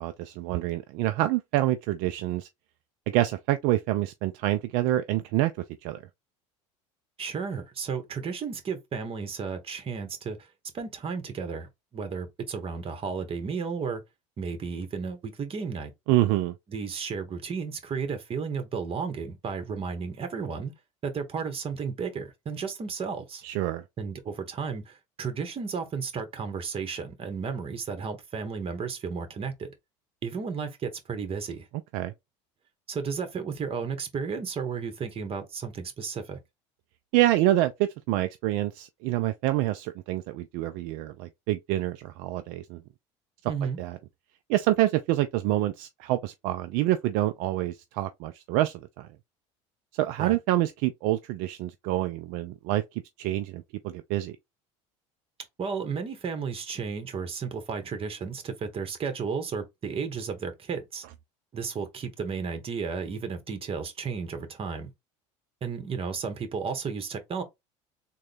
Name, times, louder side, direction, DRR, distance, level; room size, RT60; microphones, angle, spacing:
voice 1, 0.0-2.5 3.1-5.5 5.8-6.0 16.1-16.5 23.4-23.8 31.9-32.1 37.1-42.8 43.8-44.0 44.5-49.1 49.9-54.4, right 15 dB, 65° right, 0.4 m, -27 dB
voice 2, 7.2-10.4 10.7-14.0 14.4-15.9 16.7-20.7 21.0-23.4 24.0-29.7 30.2-31.7 32.9-36.4 43.5-43.8 50.2-50.4 55.6-61.0 61.5-64.9 65.6-67.4, right 5 dB, 35° right, 1.3 m, -33 dB
3.7 x 2.3 x 3.3 m
hypercardioid pair, 85°, 16 cm